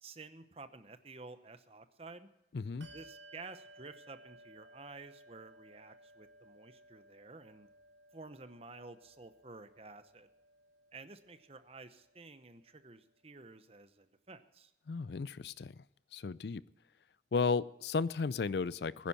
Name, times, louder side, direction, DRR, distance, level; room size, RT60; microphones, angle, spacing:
voice 1, 0.0-2.3 2.9-7.7 8.1-10.3 10.9-14.7, right 3 dB, 35° right, 10 dB, 0.9 m, -52 dB
voice 2, 2.5-2.9 14.9-15.8 16.1-16.6 17.3-19.1, left 4 dB, 65° left, 19 dB, 0.4 m, -34 dB
Bell, 2.8-12.8, right 1 dB, 85° right, 2.3 m, -59 dB
20.5 x 10.5 x 4.2 m, 0.92 s
head